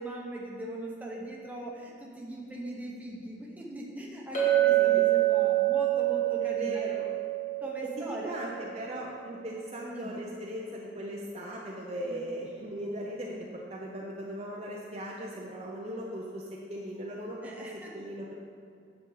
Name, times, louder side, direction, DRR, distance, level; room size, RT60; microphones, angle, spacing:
voice 1, 0.0-6.8 7.6-8.3 9.9-10.2 12.1-12.2 17.4-17.9, right 1 dB, 10° right, -3 dB, 1.0 m, -40 dB
Chink clink, 4.3-8.8, right 15 dB, 35° left, 2.0 m, -26 dB
voice 2, 4.7-5.0 6.4-7.1 8.0-16.4 16.7-18.3, equal, 35° right, -3 dB, 0.7 m, -38 dB
9.1 x 6.9 x 4.0 m, 2.4 s
head